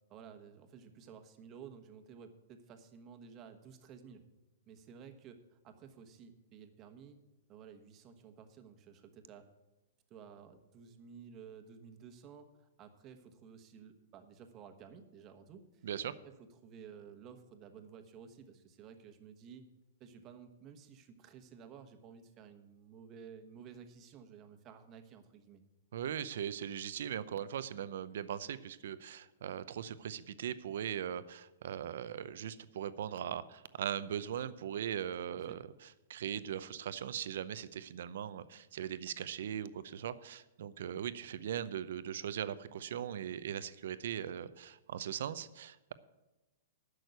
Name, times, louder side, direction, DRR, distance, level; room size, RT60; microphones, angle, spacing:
voice 1, 0.1-4.3 4.7-7.2 7.5-9.5 10.1-19.7 20.0-25.6 35.3-35.6, right 7 dB, 30° right, 8 dB, 1.2 m, -54 dB
voice 2, 25.9-35.6 36.1-45.9, right 9 dB, 70° right, 15 dB, 0.6 m, -39 dB
11.0 x 6.4 x 8.1 m, 1.1 s
hypercardioid pair, 140°, 0 cm